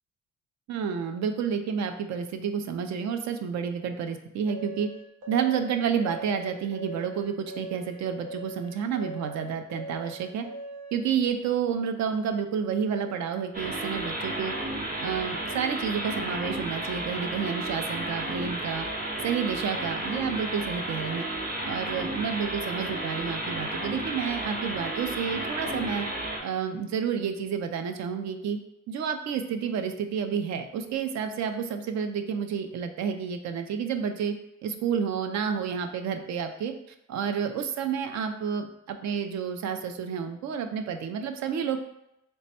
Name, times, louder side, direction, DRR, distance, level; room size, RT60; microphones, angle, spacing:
voice 1, 0.7-4.9 5.3-10.4 10.9-14.5 15.0-18.9 19.2-21.2 21.6-26.1 26.4-28.6 28.9-34.3 34.6-36.7 37.1-41.8, right 7 dB, 65° right, 7 dB, 0.5 m, -30 dB
sound 1, 4.5-11.0, right 1 dB, 80° right, 0.9 m, -41 dB
sound 2, 13.5-26.4, right 1 dB, 30° right, 0.8 m, -32 dB
3.3 x 2.1 x 4.2 m, 0.86 s
cardioid pair, 90°, 30 cm